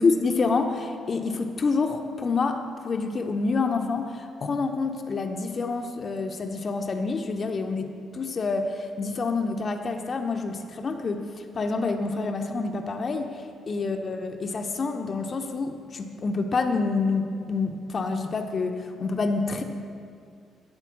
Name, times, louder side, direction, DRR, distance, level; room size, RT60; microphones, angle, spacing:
voice 1, 0.0-19.6, left 4 dB, 40° left, 5 dB, 0.7 m, -27 dB
12.0 x 4.4 x 6.9 m, 2.3 s
figure-of-eight pair, 40°, 0 cm